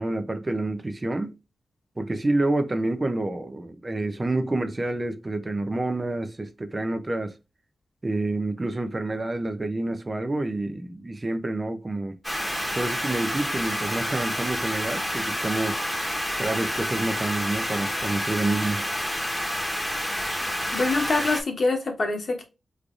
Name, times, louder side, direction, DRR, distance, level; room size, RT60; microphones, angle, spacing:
voice 1, 0.0-1.3 2.0-7.3 8.0-12.1 12.7-15.8 16.4-18.8, right 2 dB, 30° right, 0.6 m, -28 dB
sound 1, 12.2-21.4, equal, 5° left, 1.2 m, -29 dB
voice 2, 20.7-22.4, left 3 dB, 60° left, 1.2 m, -25 dB
3.8 x 3.2 x 2.4 m
wide cardioid pair, 80°, 0 cm